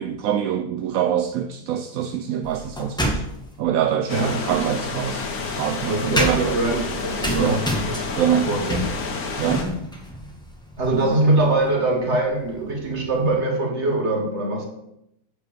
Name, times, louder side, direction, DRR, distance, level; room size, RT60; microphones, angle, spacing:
voice 1, 0.0-3.3 3.6-5.3 5.6-6.6 7.4-7.6 8.2-8.5 9.4-9.7, right 9 dB, 70° right, 0.9 m, -24 dB
sound 1, 2.4-3.6 4.7-13.4, equal, 5° left, 1.3 m, -31 dB
sound 2, 4.1-9.6, left 4 dB, 65° left, 1.6 m, -29 dB
voice 2, 4.1-4.7 5.9-7.6 7.9-8.0 8.5-8.8 10.8-14.7, right 2 dB, 45° right, 1.9 m, -22 dB
7.8 x 5.0 x 6.9 m
omnidirectional pair, 1.7 m